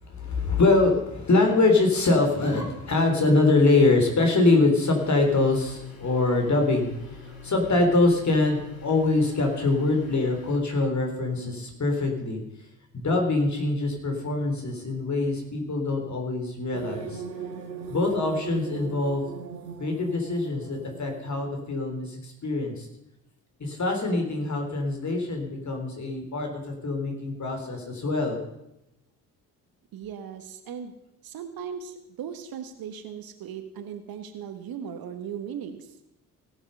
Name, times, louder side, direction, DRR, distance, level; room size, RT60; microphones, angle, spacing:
voice 1, 0.0-6.9 7.4-12.4 12.9-17.2 17.9-19.2 19.8-22.9 23.6-28.4, left 2 dB, 35° left, 2 dB, 3.5 m, -24 dB
sound 1, 4.9-10.6, left 6 dB, 65° left, 2.8 m, -44 dB
sound 2, 16.7-21.6, right 6 dB, 85° right, 1.0 m, -39 dB
voice 2, 29.9-30.9 31.2-36.0, right 8 dB, 50° right, 9 dB, 1.3 m, -38 dB
17.5 x 7.2 x 5.5 m, 0.86 s
figure-of-eight pair, 45°, 47 cm